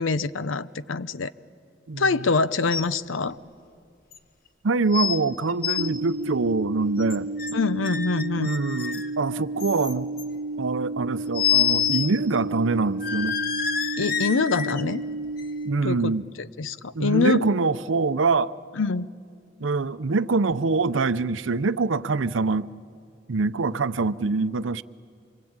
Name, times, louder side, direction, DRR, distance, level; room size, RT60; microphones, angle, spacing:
voice 1, 0.0-1.3 2.0-3.4 7.5-8.5 14.0-15.0 15.8-17.5 18.8-19.1, left 4 dB, 90° left, 0.7 m, -25 dB
voice 2, 1.9-2.3 4.6-7.3 8.4-10.1 10.6-13.4 15.6-16.3 16.9-18.6 19.6-22.7 23.3-24.8, right 3 dB, 85° right, 0.7 m, -24 dB
sound 1, 2.7-3.0 3.3-3.4 4.1-4.2 4.9-5.2 5.5-5.9 7.0-7.5 7.8-9.1 9.6-10.2 11.3-12.1 12.4-12.5 13.0-14.8 15.4-15.5, left 9 dB, 50° left, 1.3 m, -27 dB
sound 2, 5.8-15.8, right 2 dB, 45° right, 1.1 m, -32 dB
26.5 x 24.0 x 8.8 m
head